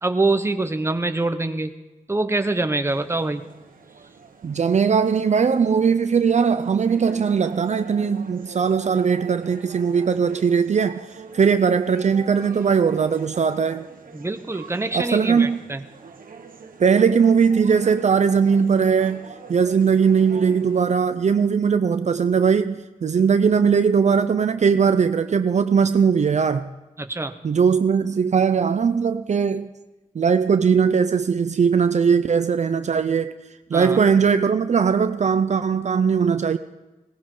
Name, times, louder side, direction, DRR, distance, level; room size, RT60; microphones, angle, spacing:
voice 1, 0.0-1.7 2.1-3.4 14.1-15.8 27.0-27.3 33.7-34.0, right 2 dB, 20° right, 0.9 m, -24 dB
sound 1, 2.9-20.9, right 5 dB, 80° right, 1.4 m, -44 dB
voice 2, 4.4-11.0 11.3-13.9 14.9-15.6 16.8-19.2 19.5-26.7 27.4-29.7 30.1-33.4 33.7-36.6, right 6 dB, 55° right, 0.5 m, -19 dB
20.0 x 18.0 x 3.8 m
wide cardioid pair, 110°, 14 cm